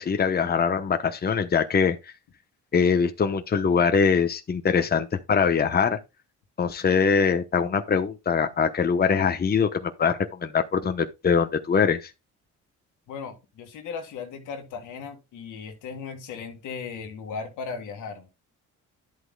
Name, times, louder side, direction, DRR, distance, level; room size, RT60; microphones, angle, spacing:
voice 1, 0.0-2.0 2.7-6.0 6.6-12.1, left 6 dB, 30° left, 0.9 m, -23 dB
voice 2, 13.1-18.3, left 5 dB, 85° left, 2.0 m, -37 dB
11.5 x 8.0 x 2.3 m
cardioid pair, 90°, 30 cm